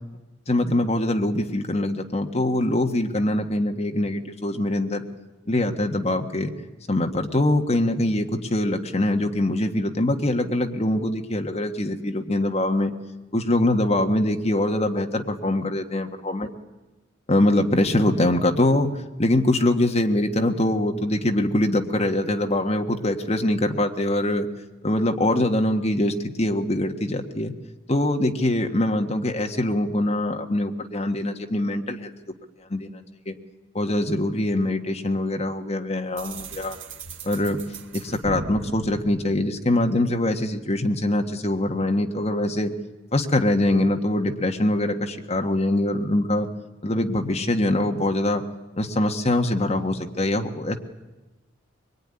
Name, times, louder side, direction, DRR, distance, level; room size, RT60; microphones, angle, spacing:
voice 1, 0.5-5.0 5.5-6.5 6.9-12.9 13.3-16.5 17.3-18.9 19.2-24.5 24.8-27.5 27.9-32.1 32.7-33.4 33.7-36.8 37.2-37.6 37.9-42.7 43.1-46.5 46.8-48.4 48.8-50.8, left 1 dB, 30° left, 4 dB, 1.5 m, -23 dB
sound 1, 36.2-40.0, right 3 dB, 70° right, 1.7 m, -38 dB
23.0 x 22.0 x 9.9 m, 1.1 s
head